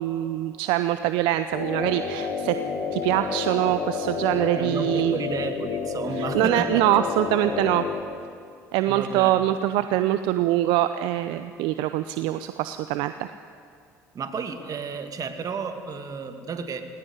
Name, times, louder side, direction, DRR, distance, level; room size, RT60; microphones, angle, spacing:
voice 1, 0.0-2.6 2.9-5.2 6.1-7.9 8.7-13.3, right 14 dB, 70° right, 10 dB, 0.7 m, -24 dB
sound 1, 1.5-8.0, left 6 dB, 70° left, 2.9 m, -30 dB
voice 2, 4.6-6.8 8.9-9.3 14.1-16.9, right 5 dB, 45° right, 7 dB, 2.3 m, -32 dB
19.5 x 18.5 x 9.7 m, 2.3 s
hypercardioid pair, 60°, 9 cm